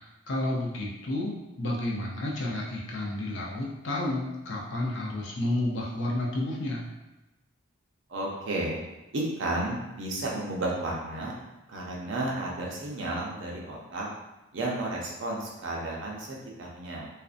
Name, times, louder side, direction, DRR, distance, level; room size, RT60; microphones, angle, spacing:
voice 1, 0.0-6.8, left 1 dB, 60° left, -2 dB, 0.5 m, -31 dB
voice 2, 8.1-8.8 9.1-11.3 11.7-14.1 14.5-17.1, right 2 dB, 60° right, -2 dB, 0.5 m, -32 dB
2.5 x 2.1 x 2.4 m, 1.0 s
head